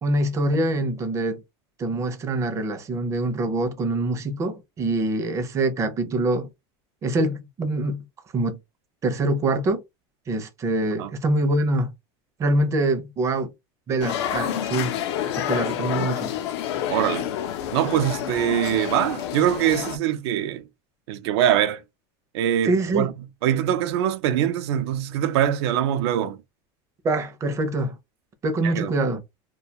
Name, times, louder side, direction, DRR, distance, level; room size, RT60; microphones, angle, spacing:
voice 1, 0.0-1.4 1.8-6.5 7.0-8.0 8.3-8.6 9.0-9.8 10.3-11.9 12.4-13.5 13.9-14.9 15.3-16.3 22.6-23.1 27.0-28.0 28.4-29.2, right 2 dB, 20° right, 0.5 m, -24 dB
sound 1, 14.0-20.0, left 10 dB, 85° left, 0.5 m, -28 dB
voice 2, 16.9-17.3 17.7-20.6 21.1-21.8 22.3-23.1 23.4-26.4 28.6-28.9, right 10 dB, 80° right, 0.5 m, -23 dB
2.3 x 2.2 x 2.7 m
supercardioid pair, 155°, 14 cm